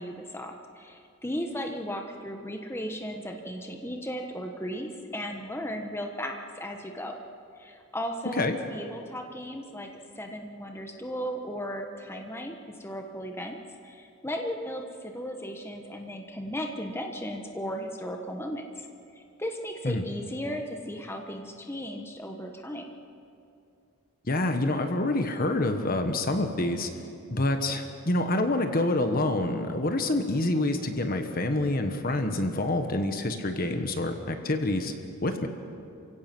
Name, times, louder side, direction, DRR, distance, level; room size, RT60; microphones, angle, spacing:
voice 1, 0.0-7.2 7.6-8.5 8.7-9.9 10.2-13.6 13.8-18.9 19.4-22.8, equal, 10° left, 3 dB, 1.3 m, -36 dB
voice 2, 24.3-26.9 27.3-34.9 35.2-35.5, left 2 dB, 45° left, 6 dB, 1.3 m, -27 dB
28.5 x 16.5 x 6.1 m, 2.5 s
head